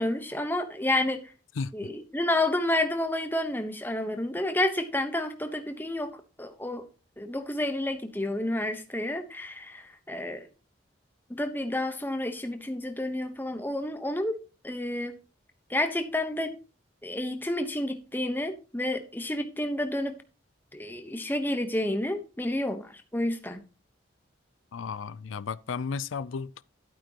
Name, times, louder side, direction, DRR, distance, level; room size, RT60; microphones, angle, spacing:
voice 1, 0.0-1.3 1.7-6.8 7.2-10.5 11.3-14.4 14.6-15.1 15.7-16.5 17.0-20.1 20.7-23.6, left 1 dB, 10° left, 1.0 m, -30 dB
voice 2, 24.7-26.6, left 5 dB, 85° left, 0.4 m, -34 dB
12.0 x 8.8 x 2.9 m
head